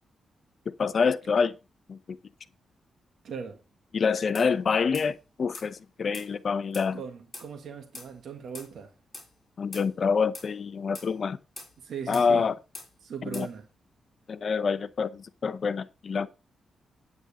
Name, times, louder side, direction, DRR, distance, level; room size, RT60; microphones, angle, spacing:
voice 1, 0.7-1.5 1.9-2.2 3.9-7.0 9.6-11.4 12.1-12.5 13.3-13.5 14.3-16.3, left 5 dB, 40° left, 0.7 m, -26 dB
voice 2, 3.2-3.6 6.9-8.9 11.8-12.4 13.0-13.7, right 6 dB, 65° right, 1.6 m, -39 dB
sound 1, 4.3-4.5 4.9-5.1 5.5-5.7 6.1-6.3 6.7-6.9 7.3-7.5 7.9-8.1 8.5-8.7 9.1-9.3 9.7-9.9 10.3-10.5 10.9-11.1 11.6-11.7 12.1-12.3 12.7-12.9 13.3-13.5, left 2 dB, 15° left, 6.5 m, -43 dB
9.5 x 8.7 x 4.1 m
wide cardioid pair, 170°, 0 cm